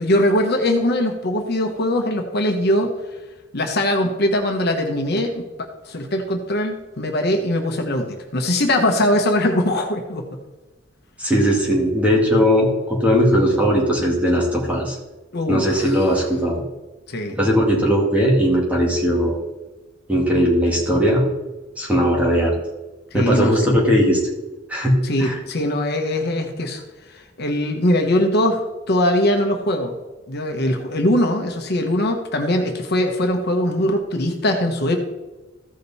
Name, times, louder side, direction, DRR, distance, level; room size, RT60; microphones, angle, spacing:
voice 1, 0.0-2.9 3.5-10.4 15.3-16.0 17.1-17.4 23.1-23.5 25.0-26.8 27.1-28.6 28.9-29.9 30.3-35.0, left 1 dB, 55° left, 4 dB, 1.1 m, -21 dB
voice 2, 11.2-15.0 15.5-16.6 17.4-19.4 20.1-21.3 21.8-22.5 23.1-24.2 24.7-25.4, equal, 5° right, -3 dB, 2.3 m, -18 dB
14.5 x 5.1 x 4.2 m, 1.1 s
head